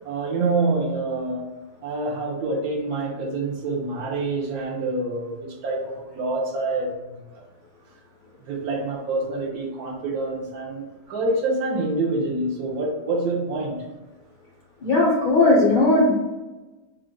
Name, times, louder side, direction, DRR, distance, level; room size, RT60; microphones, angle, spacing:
voice 1, 0.0-1.5 1.8-7.2 8.4-13.8, right 2 dB, 70° right, 0 dB, 1.0 m, -26 dB
voice 2, 14.8-16.1, left 2 dB, 70° left, -4 dB, 0.4 m, -17 dB
3.7 x 2.3 x 3.7 m, 1.1 s
omnidirectional pair, 1.8 m